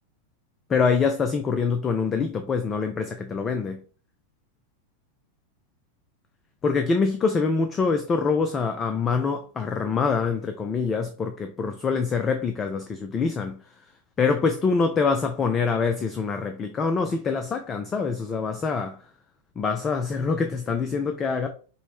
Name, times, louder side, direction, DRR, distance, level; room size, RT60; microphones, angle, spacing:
voice 1, 0.7-3.8 6.6-13.6 14.2-19.0 19.6-21.5, left 5 dB, 20° left, 0.4 m, -25 dB
5.4 x 2.1 x 2.9 m
figure-of-eight pair, 90°, 0 cm